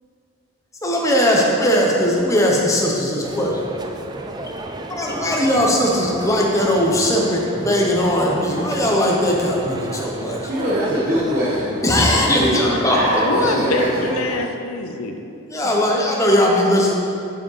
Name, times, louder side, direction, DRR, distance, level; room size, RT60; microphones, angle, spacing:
voice 1, 0.8-3.6 4.9-10.4 11.8-13.5 15.5-16.9, equal, 15° left, -2 dB, 1.0 m, -19 dB
sound 1, 3.2-14.5, right 2 dB, 20° right, 0.4 m, -33 dB
voice 2, 10.5-14.1, equal, 40° right, -11 dB, 1.6 m, -22 dB
voice 3, 13.2-15.2 15.6-15.8, left 3 dB, 80° left, 5 dB, 0.7 m, -25 dB
7.2 x 7.1 x 4.9 m, 2.6 s
head